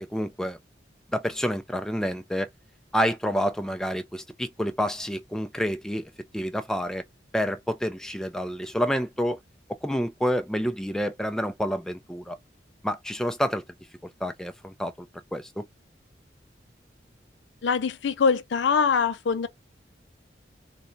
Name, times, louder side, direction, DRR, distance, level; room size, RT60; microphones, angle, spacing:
voice 1, 0.1-0.6 1.1-2.5 2.9-7.0 7.3-9.4 9.8-12.4 12.8-13.6 14.2-15.1 15.3-15.7, equal, 5° left, 0.3 m, -28 dB
voice 2, 17.6-19.5, left 5 dB, 80° left, 0.4 m, -23 dB
4.0 x 2.2 x 2.6 m
head